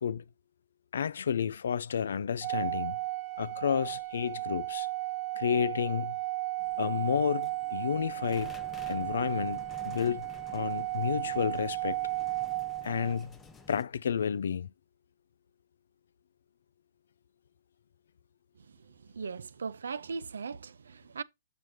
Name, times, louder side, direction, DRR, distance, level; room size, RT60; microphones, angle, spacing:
voice 1, 0.9-3.0 3.4-4.9 5.4-6.1 6.8-8.5 8.9-10.2 10.5-12.0 12.8-13.3 13.7-14.7, left 7 dB, 70° left, 0.3 m, -31 dB
Organ, 2.4-13.3, right 18 dB, 35° right, 0.7 m, -35 dB
sound 1, 6.6-13.8, left 5 dB, 20° left, 0.7 m, -52 dB
voice 2, 19.1-21.2, right 5 dB, 75° right, 0.5 m, -38 dB
7.5 x 6.1 x 3.0 m
figure-of-eight pair, 120°, 0 cm